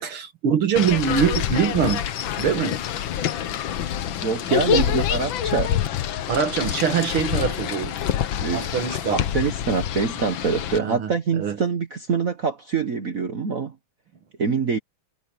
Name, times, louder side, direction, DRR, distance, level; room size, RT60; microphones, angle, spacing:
voice 1, 0.0-2.0 2.4-2.8 4.7-4.9 6.3-8.0 8.5-9.2 10.7-11.6, right 7 dB, 75° right, 2.5 m, -23 dB
sound 1, 0.8-10.8, left 10 dB, 65° left, 1.7 m, -26 dB
voice 2, 4.2-5.8 8.4-8.6 9.1-13.7 14.4-14.8, right 5 dB, 45° right, 1.5 m, -25 dB
omnidirectional pair, 2.4 m